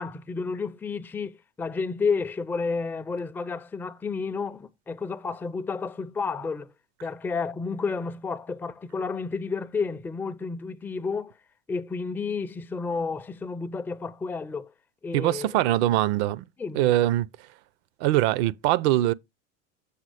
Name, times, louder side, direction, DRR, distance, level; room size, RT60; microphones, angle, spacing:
voice 1, 0.0-6.7 7.0-11.3 11.7-14.7 15.0-15.5 16.6-16.9, left 4 dB, 5° left, 0.4 m, -31 dB
voice 2, 15.1-16.4 16.7-17.3 18.0-19.1, right 15 dB, 65° right, 0.6 m, -22 dB
7.3 x 3.8 x 4.8 m
hypercardioid pair, 95°, 35 cm